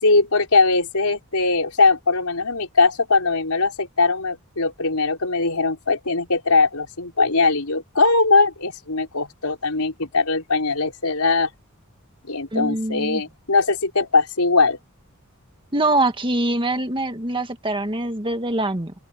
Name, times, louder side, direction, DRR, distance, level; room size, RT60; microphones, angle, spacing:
voice 1, 0.0-11.5 12.3-14.8, left 3 dB, 80° left, 4.9 m, -20 dB
voice 2, 12.5-13.2 15.7-18.9, right 2 dB, 25° right, 2.0 m, -23 dB
open air
head